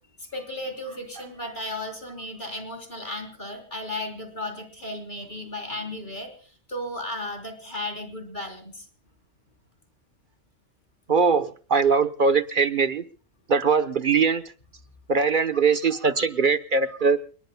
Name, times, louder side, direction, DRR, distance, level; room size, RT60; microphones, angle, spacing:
voice 1, 0.2-8.9, left 1 dB, 40° left, 4.0 m, -35 dB
voice 2, 11.1-13.0 13.5-14.4 15.1-17.2, right 5 dB, 45° right, 1.1 m, -21 dB
30.0 x 19.0 x 2.3 m
omnidirectional pair, 1.3 m